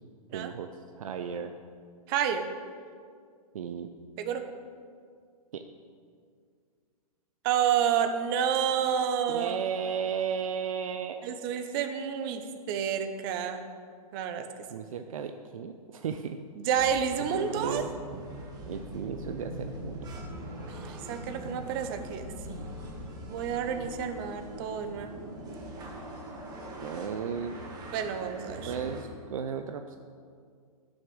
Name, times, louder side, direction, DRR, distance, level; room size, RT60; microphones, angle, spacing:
voice 1, 0.3-0.7 1.0-1.5 3.5-3.9 5.5-5.6 9.3-11.2 14.7-16.4 17.3-17.9 18.7-20.0 26.8-27.6 28.7-30.0, right 7 dB, 60° right, 7 dB, 0.6 m, -34 dB
voice 2, 2.1-2.4 4.2-4.4 7.4-9.6 11.2-13.6 14.1-14.5 16.6-17.9 20.7-22.7 23.3-25.1 27.9-28.7, right 8 dB, 35° right, 8 dB, 0.9 m, -29 dB
sound 1, 16.8-29.0, right 1 dB, 20° right, 1.9 m, -42 dB
10.5 x 6.4 x 6.3 m, 2.1 s
figure-of-eight pair, 120°, 19 cm